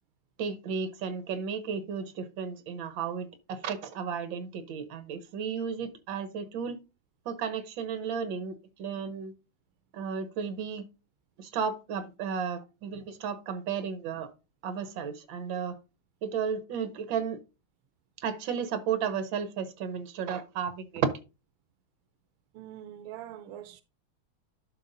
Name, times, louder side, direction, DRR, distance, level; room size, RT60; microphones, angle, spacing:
voice 1, 0.4-6.7 7.2-9.3 9.9-10.8 11.4-14.3 14.6-15.7 16.2-17.4 18.2-21.1, right 6 dB, 70° right, 1.7 m, -33 dB
voice 2, 22.5-23.8, right 12 dB, 90° right, 1.4 m, -43 dB
11.5 x 5.5 x 2.6 m
omnidirectional pair, 2.2 m